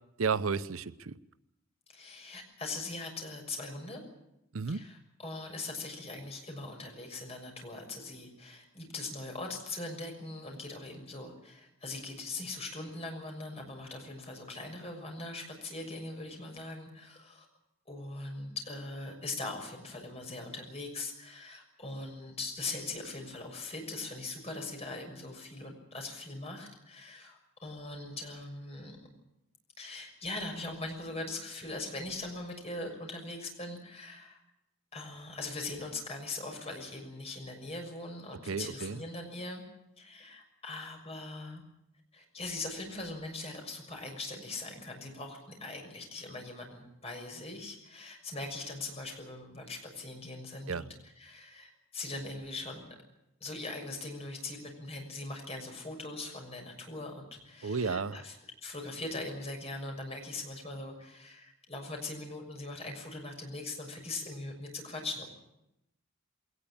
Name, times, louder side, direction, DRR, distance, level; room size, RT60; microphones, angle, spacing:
voice 1, 0.2-1.1 4.5-4.8 38.5-39.0 50.7-50.9 57.6-58.2, right 5 dB, 80° right, 0.8 m, -32 dB
voice 2, 1.9-4.0 4.7-17.5 17.9-29.0 29.8-34.4 34.9-39.6 40.0-41.6 42.1-52.8 53.4-65.3, left 2 dB, 30° left, 6.5 m, -41 dB
21.5 x 19.0 x 8.7 m
head